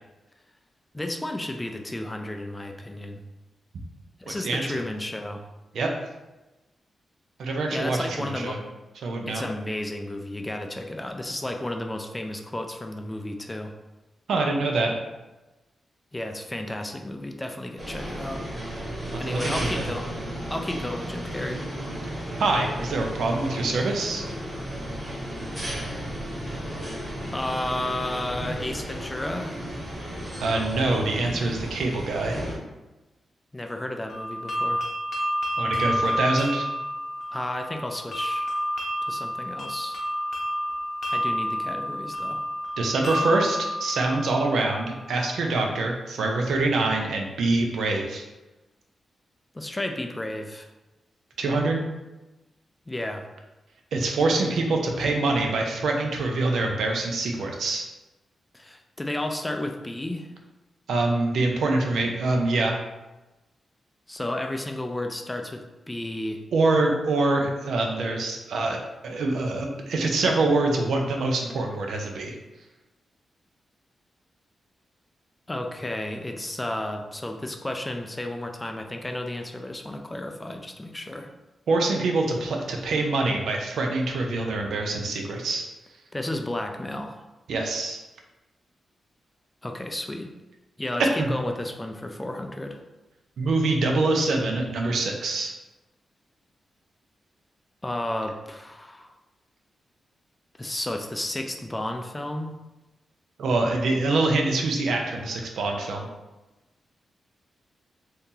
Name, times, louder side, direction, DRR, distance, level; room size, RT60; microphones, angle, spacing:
voice 1, 0.9-3.2 4.2-5.5 7.7-8.6 9.3-13.7 16.1-18.5 19.2-20.1 20.5-21.6 27.3-29.7 33.5-34.8 37.3-38.5 39.0-40.0 41.1-42.4 49.5-50.7 52.9-53.2 58.5-60.3 64.1-66.4 75.5-81.3 86.1-87.2 89.6-90.3 90.8-92.8 97.8-99.1 100.6-102.6, left 1 dB, 15° left, 5 dB, 0.3 m, -32 dB
voice 2, 4.4-4.8 5.7-5.9 7.4-8.6 9.0-9.4 14.3-15.0 19.3-19.9 22.4-24.2 30.4-32.4 35.6-36.7 42.8-48.2 51.4-51.8 53.9-57.8 60.9-62.8 66.5-68.8 69.0-72.4 81.7-85.7 87.5-88.0 91.0-91.3 93.4-95.5 103.4-106.1, right 2 dB, 90° right, 2 dB, 0.5 m, -25 dB
sound 1, 17.8-32.5, right 1 dB, 25° right, 0.9 m, -34 dB
sound 2, 34.1-44.9, equal, 45° left, 0.7 m, -29 dB
2.7 x 2.7 x 3.7 m, 1.1 s
wide cardioid pair, 125°, 0 cm